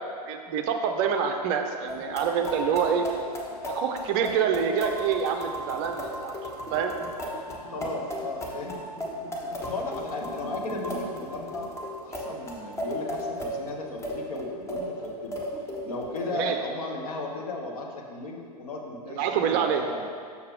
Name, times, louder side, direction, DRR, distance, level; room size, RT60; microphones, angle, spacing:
voice 1, 0.3-3.0 3.7-6.4 6.7-6.9 16.3-16.6 19.2-19.8, right 7 dB, 35° right, 5 dB, 0.5 m, -26 dB
sound 1, 1.9-16.2, equal, 15° left, 1.0 m, -35 dB
voice 2, 7.7-8.9 9.6-11.7 12.0-15.4 15.8-20.1, left 2 dB, 60° left, 0 dB, 1.1 m, -35 dB
6.7 x 6.6 x 3.5 m, 2.2 s
figure-of-eight pair, 100°, 21 cm